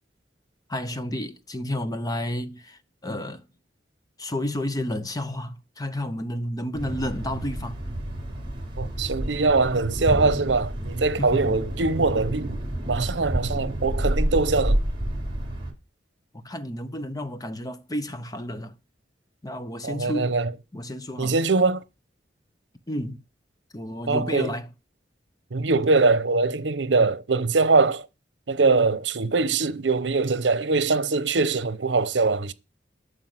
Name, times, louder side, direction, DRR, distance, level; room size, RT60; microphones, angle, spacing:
voice 1, 0.7-3.4 4.2-7.8 11.2-11.6 16.3-18.8 19.4-20.4 20.7-21.3 22.9-23.2 23.7-24.7, left 1 dB, 20° left, 0.9 m, -31 dB
Thunder, 6.7-15.7, right 1 dB, 30° right, 3.8 m, -29 dB
voice 2, 8.8-12.6 12.9-14.8 19.8-20.5 21.2-21.8 24.1-24.5 25.5-28.1 28.5-32.5, right 3 dB, 80° right, 0.8 m, -22 dB
9.2 x 6.6 x 7.7 m
head